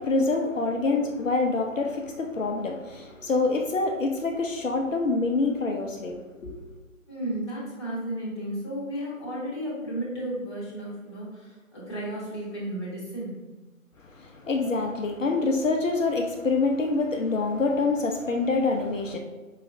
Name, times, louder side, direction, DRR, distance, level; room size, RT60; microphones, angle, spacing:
voice 1, 0.0-6.2 6.4-6.6 14.1-19.2, left 3 dB, 65° left, 3 dB, 0.6 m, -26 dB
voice 2, 7.1-13.4, right 1 dB, 20° left, -7 dB, 0.9 m, -33 dB
4.7 x 3.1 x 2.6 m, 1.2 s
figure-of-eight pair, 155°, 42 cm